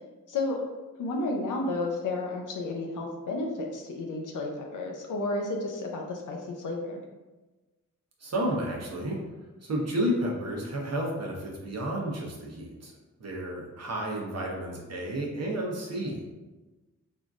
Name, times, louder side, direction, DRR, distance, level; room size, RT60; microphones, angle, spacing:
voice 1, 1.0-7.0, left 2 dB, 75° left, 0 dB, 0.6 m, -32 dB
voice 2, 8.2-9.2 9.6-12.9 13.2-16.2, right 1 dB, 55° right, -1 dB, 0.9 m, -31 dB
3.6 x 2.5 x 2.4 m, 1.2 s
cardioid pair, 55°, 31 cm